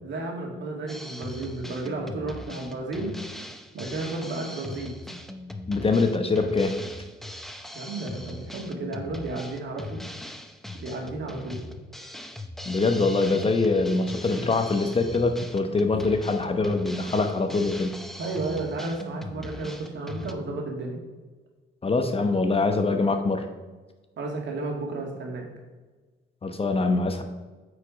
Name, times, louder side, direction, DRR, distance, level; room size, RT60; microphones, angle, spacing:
voice 1, 0.0-3.1 3.7-4.9 7.7-10.0 10.7-11.6 18.2-21.0 24.2-25.5, right 2 dB, 65° right, 0 dB, 2.2 m, -33 dB
Drum kit, 0.9-20.3, left 1 dB, ahead, 0.7 m, -40 dB
voice 2, 5.7-6.7 12.7-17.9 21.8-23.4 26.4-27.2, left 3 dB, 30° left, 6 dB, 0.9 m, -24 dB
8.4 x 4.9 x 5.1 m, 1.3 s
cardioid pair, 90°, 20 cm